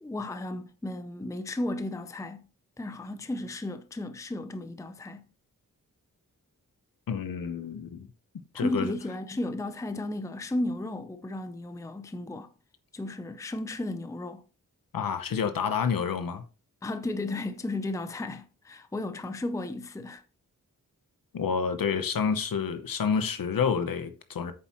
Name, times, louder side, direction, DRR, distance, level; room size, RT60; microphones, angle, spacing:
voice 1, 0.0-2.5 2.8-5.3 8.5-12.5 12.9-14.4 16.8-20.2, left 2 dB, 10° left, 0.5 m, -34 dB
voice 2, 7.1-8.1 8.5-8.9 14.9-16.4 21.3-24.5, left 6 dB, 85° left, 0.9 m, -29 dB
8.8 x 7.3 x 3.0 m
wide cardioid pair, 120°, 33 cm